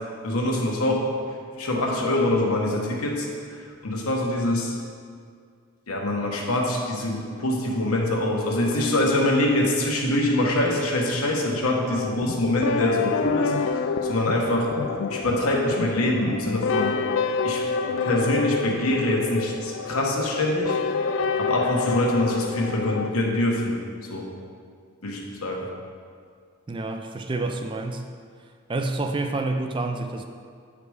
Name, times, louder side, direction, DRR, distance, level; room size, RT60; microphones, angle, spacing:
voice 1, 0.2-1.1 1.6-3.6 3.8-4.8 5.9-14.7 15.1-16.9 17.4-17.6 18.0-20.8 21.4-23.7 24.1-24.3 25.0-25.7, left 1 dB, 85° left, -1 dB, 1.2 m, -24 dB
sound 1, 12.0-23.1, left 5 dB, 60° left, 0.3 m, -28 dB
voice 2, 26.7-28.0 28.7-30.2, right 2 dB, 20° right, 6 dB, 0.3 m, -28 dB
8.1 x 5.0 x 4.8 m, 2.1 s
head